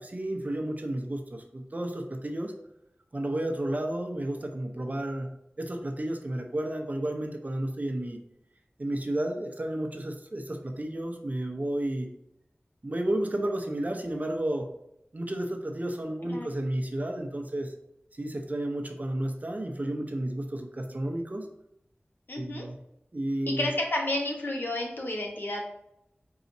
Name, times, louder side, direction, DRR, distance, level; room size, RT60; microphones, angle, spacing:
voice 1, 0.0-2.5 3.1-8.2 8.8-12.1 12.8-14.7 15.1-17.7 18.1-21.5 22.4-22.8 23.1-23.7, right 1 dB, 40° right, 4 dB, 0.7 m, -32 dB
voice 2, 16.2-16.6 22.3-22.7 23.5-25.6, left 1 dB, 55° left, 0 dB, 1.2 m, -31 dB
4.7 x 4.0 x 2.7 m, 0.80 s
wide cardioid pair, 55°, 4 cm